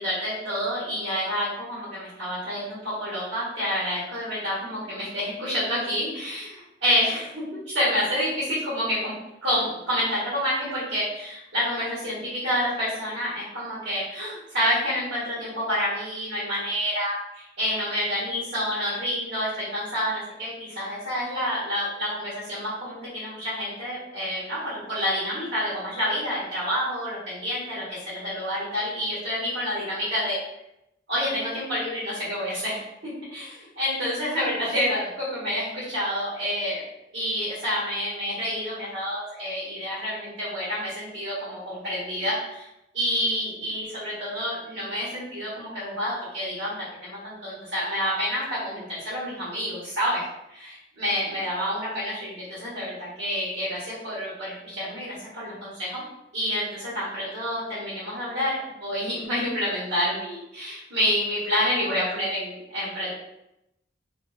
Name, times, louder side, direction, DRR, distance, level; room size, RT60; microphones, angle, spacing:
voice 1, 0.0-9.1 9.4-30.4 31.1-33.4 33.8-36.8 37.1-42.7 42.9-56.0 56.3-63.1, equal, 80° right, -10 dB, 1.1 m, -28 dB
2.5 x 2.1 x 2.3 m, 0.86 s
head